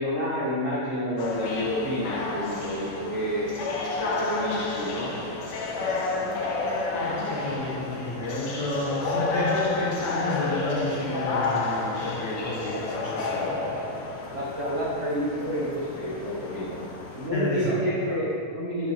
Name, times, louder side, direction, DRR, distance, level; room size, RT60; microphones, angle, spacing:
voice 1, 0.0-3.5 4.0-5.1 14.3-16.8 17.1-18.9, equal, 70° right, -8 dB, 0.6 m, -29 dB
sound 1, 1.2-17.3, left 3 dB, 65° left, 1.5 m, -31 dB
voice 2, 5.8-13.7 17.3-17.8 18.1-18.2, left 1 dB, 45° left, -8 dB, 1.7 m, -31 dB
9.3 x 7.8 x 3.2 m, 2.2 s
omnidirectional pair, 3.4 m